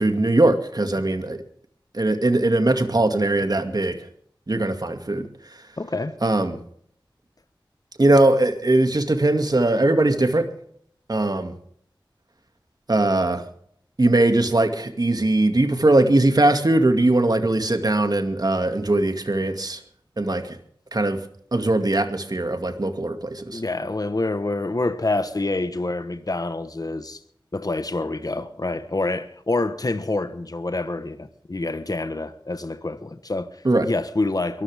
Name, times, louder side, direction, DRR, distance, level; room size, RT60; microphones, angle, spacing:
voice 1, 0.0-1.4 1.9-4.0 4.5-5.3 6.2-6.6 8.0-10.5 11.1-11.5 12.9-13.4 14.0-19.8 20.2-20.6 20.9-21.2 21.5-23.6 33.6-33.9, right 2 dB, 50° right, 2.3 m, -20 dB
voice 2, 5.8-6.2 23.5-27.2 27.5-33.6 33.8-34.6, left 2 dB, 45° left, 1.2 m, -27 dB
23.0 x 14.0 x 3.6 m
wide cardioid pair, 55°, 9 cm